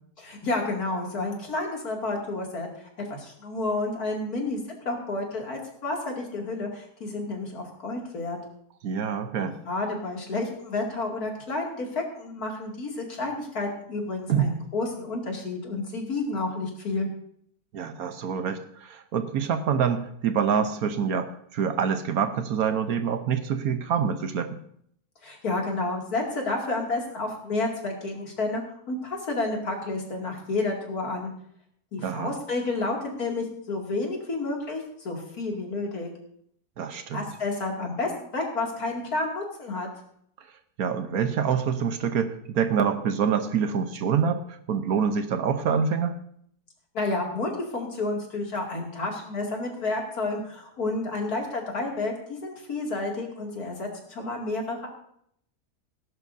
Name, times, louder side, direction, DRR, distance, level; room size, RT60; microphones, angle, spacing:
voice 1, 0.2-8.4 9.4-17.1 25.2-28.6 28.9-31.3 31.9-36.1 37.1-39.9 46.9-54.9, left 2 dB, 65° left, 0 dB, 2.9 m, -30 dB
voice 2, 8.8-9.6 14.3-14.5 17.7-24.6 32.0-32.4 36.8-37.3 40.8-46.2, right 7 dB, 65° right, 9 dB, 1.3 m, -26 dB
19.0 x 11.0 x 2.7 m, 0.67 s
omnidirectional pair, 1.7 m